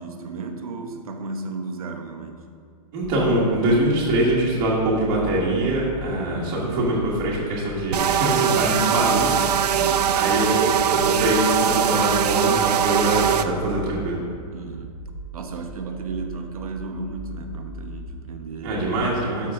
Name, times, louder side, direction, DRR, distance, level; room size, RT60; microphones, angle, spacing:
voice 1, 0.0-2.4 9.8-10.4 14.5-14.9 15.3-18.9, right 3 dB, 65° right, 5 dB, 1.0 m, -34 dB
voice 2, 2.9-9.4 9.7-14.2 18.6-19.5, right 1 dB, 20° right, -6 dB, 1.5 m, -23 dB
sound 1, 3.0-19.0, right 3 dB, 40° right, 0.8 m, -38 dB
sound 2, 7.9-13.4, right 9 dB, 85° right, 0.5 m, -21 dB
12.5 x 5.8 x 3.6 m, 2.2 s
hypercardioid pair, 180°, 20 cm